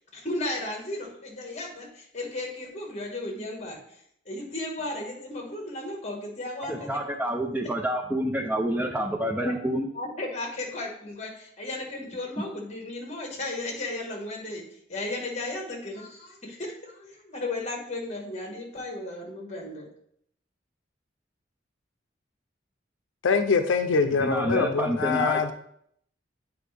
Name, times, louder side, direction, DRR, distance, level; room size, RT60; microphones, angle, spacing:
voice 1, 0.1-4.0 4.2-6.9 9.2-9.5 9.9-14.6 14.9-19.9, left 2 dB, 35° left, 1 dB, 1.5 m, -35 dB
voice 2, 6.6-9.9 24.0-25.4, equal, 10° right, 4 dB, 0.5 m, -28 dB
voice 3, 23.2-25.5, left 5 dB, 80° left, 8 dB, 0.5 m, -24 dB
8.1 x 4.8 x 3.3 m, 0.69 s
head